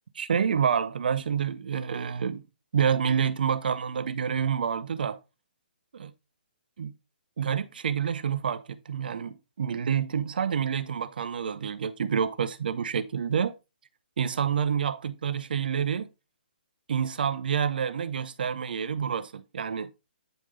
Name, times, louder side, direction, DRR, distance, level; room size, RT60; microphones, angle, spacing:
voice 1, 0.1-2.4 2.7-5.2 6.8-6.9 7.4-13.5 14.2-16.1 16.9-19.9, right 7 dB, 60° right, 0.6 m, -28 dB
8.9 x 3.6 x 3.2 m
hypercardioid pair, 165°, 6 cm